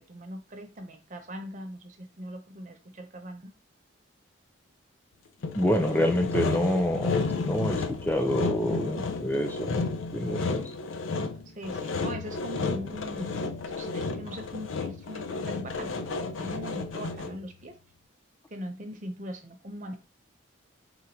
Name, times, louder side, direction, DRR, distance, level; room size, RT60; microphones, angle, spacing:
voice 1, 0.0-3.5 11.5-13.4 13.7-17.8 18.5-20.0, equal, 40° right, 5 dB, 0.7 m, -40 dB
Sawing, 5.4-17.5, left 4 dB, 85° left, 0.4 m, -32 dB
voice 2, 5.5-7.1 7.4-10.7, equal, 10° left, 3 dB, 0.5 m, -27 dB
3.9 x 2.3 x 4.4 m, 0.29 s
head